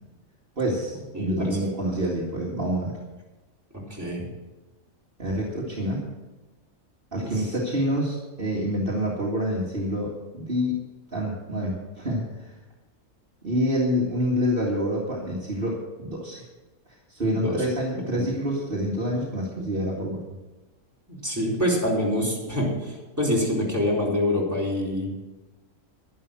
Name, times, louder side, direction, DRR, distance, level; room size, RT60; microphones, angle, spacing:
voice 1, 0.6-2.9 5.2-6.0 7.1-10.7 11.1-12.5 13.4-16.4 17.1-20.2, equal, 40° right, -4 dB, 2.3 m, -27 dB
voice 2, 1.1-1.6 3.9-4.2 7.2-7.4 17.3-17.6 18.1-18.3 21.1-25.1, left 1 dB, 10° right, -5 dB, 4.2 m, -26 dB
11.5 x 11.0 x 6.2 m, 1.1 s
omnidirectional pair, 1.4 m